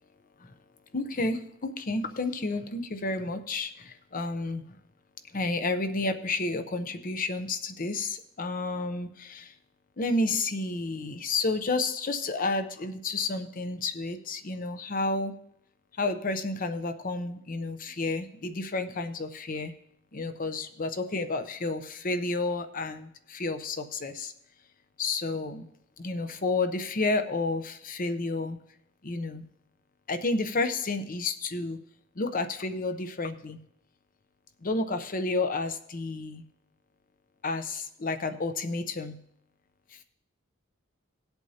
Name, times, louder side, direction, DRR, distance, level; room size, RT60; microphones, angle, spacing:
voice 1, 0.9-4.6 5.3-9.5 10.0-15.4 15.9-19.7 20.1-24.3 25.0-25.7 26.0-28.6 29.0-29.5 30.1-31.8 32.2-33.6 34.6-36.4 37.4-39.2 39.9-40.0, left 3 dB, 40° left, 9 dB, 0.7 m, -31 dB
18.5 x 8.0 x 2.8 m, 0.74 s
head